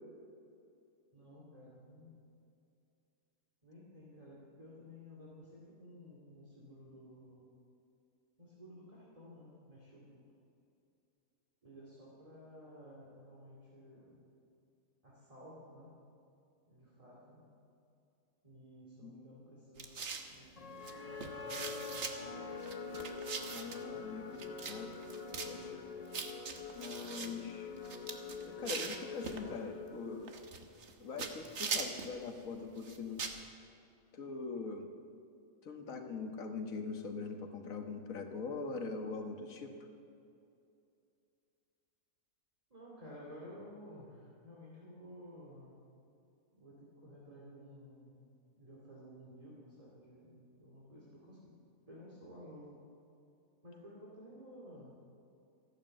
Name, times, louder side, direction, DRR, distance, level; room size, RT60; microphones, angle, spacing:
voice 1, 1.1-2.2 3.6-7.5 8.4-10.2 11.6-14.3 15.0-15.9 16.7-17.5 18.4-20.0 20.2-22.9 42.7-45.9 46.5-51.6 51.9-52.8 53.6-54.9, equal, 25° right, -6 dB, 2.5 m, -54 dB
sound 1, 19.8-20.3 20.8-20.9 21.2-22.1 22.6-23.8 24.4-24.8 25.0-25.5 26.1-27.3 27.8-29.4 30.3-30.9 31.2-32.1 32.8-33.4, right 5 dB, 55° right, 1.3 m, -41 dB
sound 2, 20.6-30.8, left 4 dB, 40° left, 0.5 m, -45 dB
voice 2, 23.5-24.9 25.4-25.8 26.7-27.7 28.4-30.3 31.0-33.2 34.1-34.9 35.6-39.9, left 4 dB, 70° left, 5 dB, 1.7 m, -42 dB
14.5 x 11.5 x 7.7 m, 2.6 s
omnidirectional pair, 1.5 m